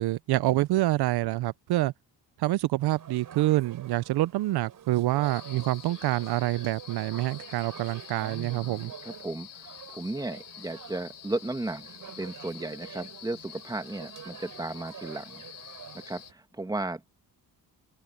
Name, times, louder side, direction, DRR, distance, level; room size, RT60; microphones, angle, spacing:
voice 1, 0.0-1.9 2.4-8.9, right 16 dB, 75° right, 0.5 m, -27 dB
sound 1, 2.8-16.3, right 9 dB, 55° right, 3.4 m, -47 dB
sound 2, 5.2-16.3, left 12 dB, 90° left, 2.0 m, -47 dB
voice 2, 8.2-15.4 16.1-17.1, right 2 dB, 10° right, 1.6 m, -35 dB
open air
cardioid pair, 160°, 39 cm